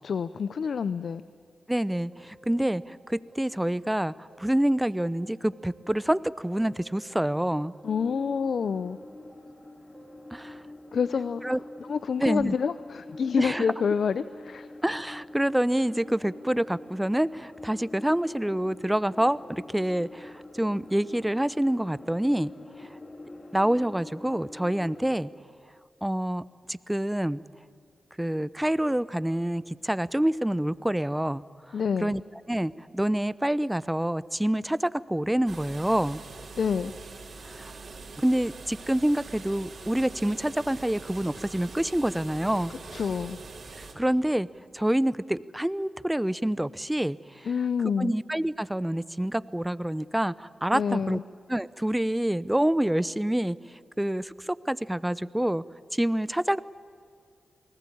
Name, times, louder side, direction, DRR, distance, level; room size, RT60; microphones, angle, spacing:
voice 1, 0.0-1.2 7.8-9.0 10.9-11.4 11.9-14.7 31.7-32.2 36.6-36.9 42.9-43.4 47.5-48.1 50.7-51.2, left 6 dB, 75° left, 14 dB, 0.5 m, -27 dB
voice 2, 1.7-7.7 10.3-10.6 11.4-11.6 12.2-12.5 13.4-13.7 14.8-22.5 22.8-22.9 23.5-25.3 26.0-26.4 26.7-27.4 28.2-31.4 31.7-31.8 32.0-32.2 32.5-36.2 37.4-37.7 38.2-42.7 43.8-44.5 44.7-47.5 48.0-51.2 51.5-53.6 54.0-55.6 55.9-56.6, right 1 dB, 10° right, 17 dB, 0.8 m, -27 dB
sound 1, 2.1-4.0 4.3-6.2 6.5-8.4 8.7-10.6 11.0-12.8, right 2 dB, 45° right, 1.4 m, -55 dB
sound 2, 7.8-25.3, left 2 dB, 45° left, 2.9 m, -46 dB
sound 3, 35.5-43.9, right 3 dB, 70° right, 3.9 m, -43 dB
27.5 x 19.5 x 8.6 m, 2.2 s
supercardioid pair, 40°, 0 cm